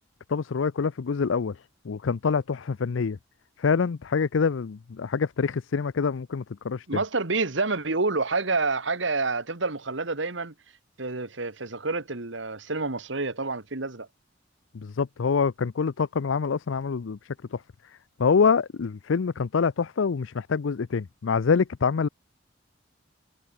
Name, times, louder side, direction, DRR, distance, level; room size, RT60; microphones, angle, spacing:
voice 1, 0.3-1.6 1.8-3.2 3.6-7.0 14.7-17.2 17.5-17.6 18.2-22.1, left 5 dB, 75° left, 0.5 m, -25 dB
voice 2, 6.9-10.5 11.0-14.1, right 3 dB, 65° right, 1.8 m, -28 dB
head